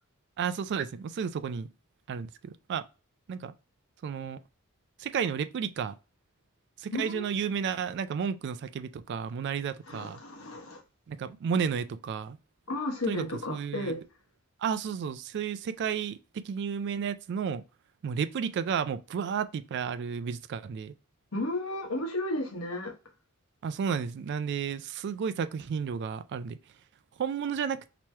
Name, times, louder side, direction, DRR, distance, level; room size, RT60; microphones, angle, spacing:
voice 1, 0.4-1.7 2.1-2.9 3.3-3.5 4.0-4.4 5.0-6.0 6.8-10.2 11.1-12.4 13.1-14.0 14.6-17.6 18.0-20.9 23.6-26.6 27.2-27.8, right 7 dB, 55° right, 0.3 m, -32 dB
voice 2, 6.9-7.3 9.9-10.8 12.7-14.0 21.3-22.9, left 1 dB, 70° left, 1.1 m, -33 dB
3.1 x 3.0 x 3.3 m
head